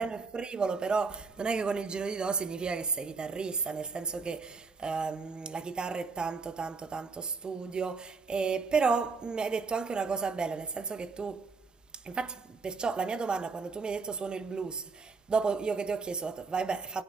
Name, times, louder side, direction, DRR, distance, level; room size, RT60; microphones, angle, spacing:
voice 1, 0.0-11.5 12.0-17.0, right 5 dB, 20° right, 0.9 m, -32 dB
26.0 x 16.5 x 2.7 m
supercardioid pair, 120°, 5 cm